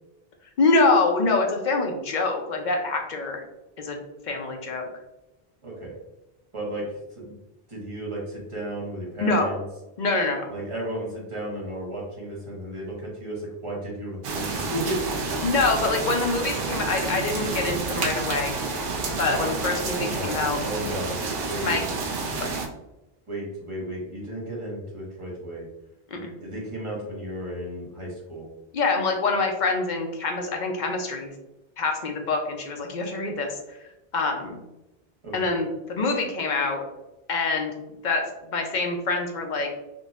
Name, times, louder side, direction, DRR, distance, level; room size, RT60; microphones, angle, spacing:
voice 1, 0.6-3.4 3.8-4.0 4.2-4.9 9.2-9.5 10.0-10.5 15.4-18.6 19.2-20.6 21.6-21.8 22.4-22.5 26.1-26.3 28.7-31.3 31.8-33.6 34.1-34.6 35.3-36.8 37.3-37.7 38.0-39.7, left 3 dB, 55° left, 3 dB, 0.7 m, -25 dB
voice 2, 5.6-5.9 6.5-6.9 7.1-7.3 7.7-9.6 10.5-15.3 20.0-21.2 21.5-21.7 23.3-25.6 26.1-28.5 35.2-35.3, right 1 dB, 30° right, -4 dB, 1.2 m, -34 dB
sound 1, 14.2-22.7, right 3 dB, 70° right, 0.8 m, -29 dB
3.8 x 2.7 x 2.4 m, 0.94 s
omnidirectional pair, 1.0 m